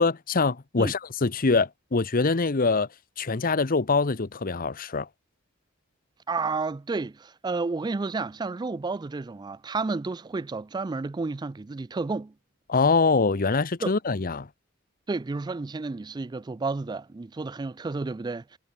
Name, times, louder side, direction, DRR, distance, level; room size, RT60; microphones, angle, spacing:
voice 1, 0.0-2.9 3.2-5.1 12.7-14.5, left 4 dB, 45° left, 0.9 m, -24 dB
voice 2, 6.3-12.3 13.8-13.9 15.1-18.6, right 3 dB, 20° right, 0.3 m, -31 dB
head